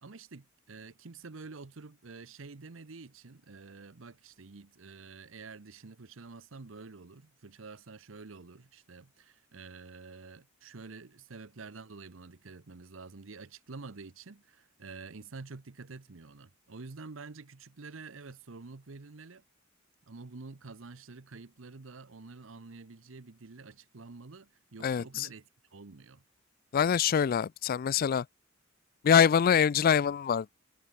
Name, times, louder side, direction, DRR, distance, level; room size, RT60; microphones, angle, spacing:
voice 1, 0.0-19.4 20.1-26.2, right 4 dB, 80° right, 0.9 m, -48 dB
voice 2, 24.8-25.3 26.7-28.2 29.0-30.5, left 7 dB, 45° left, 0.3 m, -24 dB
head